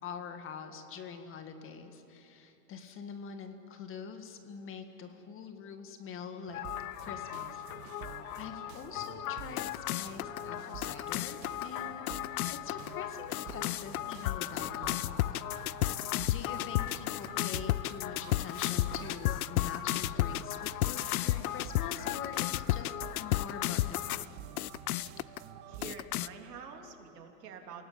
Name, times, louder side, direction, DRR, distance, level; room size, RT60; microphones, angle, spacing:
voice 1, 0.0-6.6 7.0-12.2 12.5-24.4, left 6 dB, 25° left, 7 dB, 1.9 m, -45 dB
sound 1, 6.5-24.3 24.6-25.4 25.8-26.3, left 15 dB, 65° left, 0.7 m, -34 dB
sound 2, 6.5-25.9, right 9 dB, 45° right, 1.9 m, -49 dB
voice 2, 25.7-27.9, right 6 dB, 75° right, 3 dB, 3.3 m, -47 dB
29.0 x 18.0 x 8.6 m, 2.9 s
hypercardioid pair, 125°, 48 cm